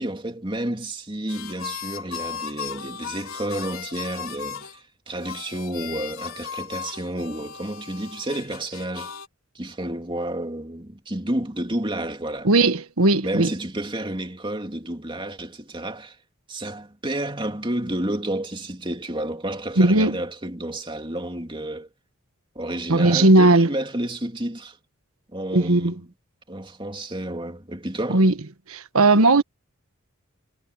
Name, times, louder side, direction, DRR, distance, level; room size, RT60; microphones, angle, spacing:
voice 1, 0.0-9.1 9.5-12.5 13.2-16.2 16.5-21.9 22.5-24.8 25.3-26.0 26.5-28.3, right 1 dB, 25° right, 2.8 m, -30 dB
sound 1, 1.3-4.8 5.2-9.3, left 7 dB, 75° left, 3.1 m, -36 dB
voice 2, 12.4-13.5 19.8-20.2 22.9-23.7 25.5-25.9 28.1-28.3 28.7-29.4, right 2 dB, 85° right, 1.4 m, -17 dB
head